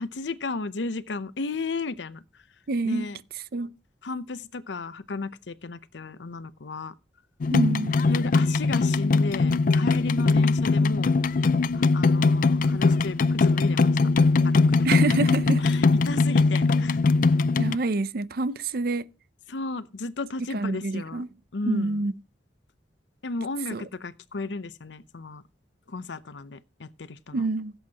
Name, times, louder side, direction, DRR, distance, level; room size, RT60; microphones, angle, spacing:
voice 1, 0.0-2.2 2.8-3.2 4.0-6.9 8.1-11.2 11.7-14.0 14.4-14.6 14.9-15.1 15.6-17.0 19.5-21.2 21.5-22.0 23.2-25.4 25.9-27.5, left 3 dB, 85° left, 0.7 m, -34 dB
voice 2, 2.7-3.1 3.5-3.7 7.5-8.0 14.8-15.7 17.6-19.1 20.5-21.3 21.7-22.1 23.7-23.8 27.3-27.7, right 3 dB, 55° right, 0.5 m, -27 dB
sound 1, 7.4-17.8, left 3 dB, 50° left, 0.4 m, -21 dB
16.0 x 8.0 x 2.9 m
head